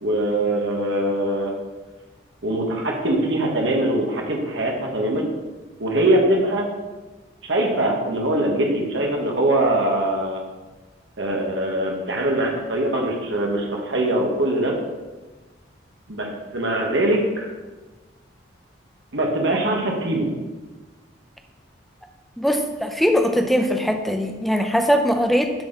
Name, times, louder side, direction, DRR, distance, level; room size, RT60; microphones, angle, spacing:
voice 1, 0.0-1.5 2.4-5.3 5.8-6.7 7.4-10.4 11.2-14.7 16.1-17.5 19.1-20.3, right 1 dB, 70° right, 0 dB, 1.4 m, -22 dB
voice 2, 22.4-25.5, equal, ahead, 5 dB, 0.5 m, -21 dB
12.0 x 4.2 x 3.9 m, 1.2 s
head